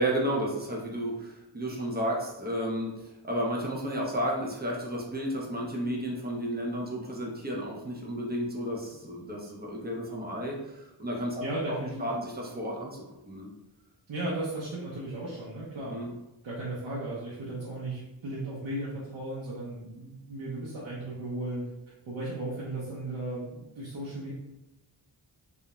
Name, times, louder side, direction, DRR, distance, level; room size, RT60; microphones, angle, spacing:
voice 1, 0.0-13.5 15.9-16.1, equal, 20° right, -2 dB, 0.5 m, -32 dB
voice 2, 11.4-12.1 14.1-16.0 16.4-21.6 22.1-24.3, right 2 dB, 80° right, -7 dB, 0.7 m, -35 dB
2.4 x 2.0 x 2.9 m, 0.95 s
wide cardioid pair, 115°, 46 cm